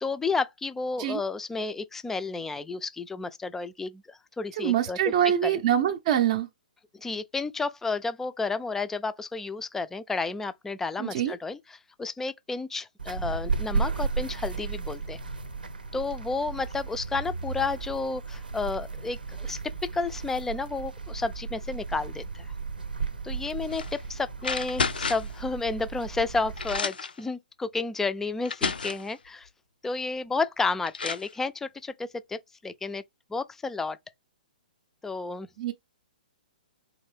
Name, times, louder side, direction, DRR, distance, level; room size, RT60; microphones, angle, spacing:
voice 1, 0.0-5.1 5.4-5.6 6.9-15.2 15.9-19.6 19.9-22.5 23.2-29.5 29.8-32.4 32.6-33.0 33.3-34.0 35.0-35.5, left 3 dB, 5° left, 0.3 m, -31 dB
voice 2, 4.6-6.5 11.0-11.3 35.6-35.7, right 10 dB, 45° right, 0.5 m, -24 dB
sound 1, 13.0-26.8, right 4 dB, 90° right, 0.7 m, -34 dB
sound 2, 23.7-23.9 24.4-25.4 26.2-26.3 26.6-27.2 28.0-28.1 28.5-29.1 30.4-30.5 30.9-31.3, left 5 dB, 85° left, 0.4 m, -31 dB
3.6 x 2.6 x 3.3 m
hypercardioid pair, 130°, 5 cm